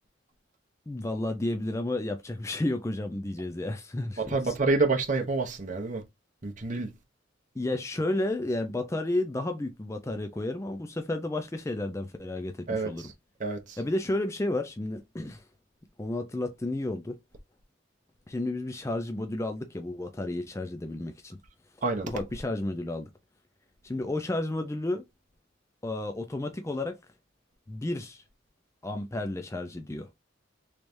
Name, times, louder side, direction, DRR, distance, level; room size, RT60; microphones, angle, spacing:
voice 1, 0.9-4.5 7.6-13.1 13.8-15.4 16.0-17.2 18.3-21.4 22.0-23.1 23.8-25.0 25.8-27.0 27.7-28.2 28.8-30.1, left 2 dB, 15° left, 0.4 m, -32 dB
voice 2, 4.2-6.0 6.4-6.9 12.7-13.1 13.4-13.8 21.8-22.1, right 3 dB, 40° right, 0.8 m, -28 dB
3.3 x 3.1 x 2.6 m
head